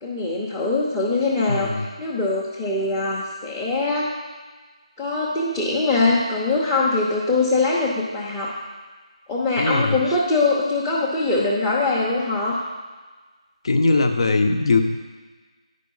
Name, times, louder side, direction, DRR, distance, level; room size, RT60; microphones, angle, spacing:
voice 1, 0.0-4.1 5.0-8.5 9.3-12.6, left 3 dB, 5° left, -7 dB, 0.8 m, -22 dB
voice 2, 1.5-1.9 9.6-10.0 13.6-14.8, left 3 dB, 50° left, 6 dB, 0.9 m, -20 dB
10.0 x 5.2 x 5.5 m, 1.3 s
figure-of-eight pair, 165°, 4 cm